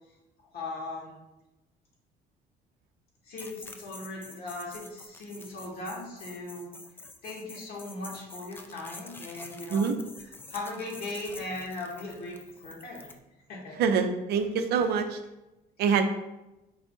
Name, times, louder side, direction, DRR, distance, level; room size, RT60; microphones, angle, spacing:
voice 1, 0.5-1.2 3.2-6.7 7.2-9.9 10.5-13.1 13.5-13.8, left 2 dB, 65° left, -2 dB, 1.5 m, -38 dB
sound 1, 3.4-13.2, left 2 dB, 10° left, 0.3 m, -47 dB
voice 2, 13.8-15.2 15.8-16.0, right 6 dB, 70° right, 7 dB, 0.5 m, -25 dB
4.7 x 2.5 x 3.6 m, 0.96 s
cardioid pair, 110°, 17 cm